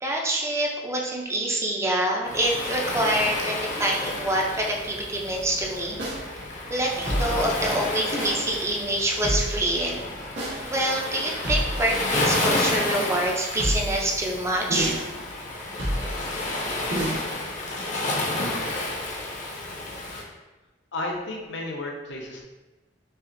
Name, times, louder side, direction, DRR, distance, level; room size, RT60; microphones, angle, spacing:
voice 1, 0.0-6.0 6.7-10.1 10.6-15.0, right 1 dB, 15° right, -1 dB, 0.5 m, -26 dB
Waves surf, 2.3-20.2, left 2 dB, 40° left, 0.6 m, -31 dB
sound 1, 6.0-6.2 7.1-7.5 8.2-8.4 9.2-9.7 10.4-10.6 11.4-11.9 12.5-12.8 13.6-14.0 14.7-15.1 15.8-16.2 16.9-17.3, equal, 85° right, 1.2 m, -28 dB
voice 2, 20.9-22.4, left 2 dB, 75° left, 0 dB, 0.7 m, -32 dB
5.6 x 2.5 x 2.6 m, 1.1 s
head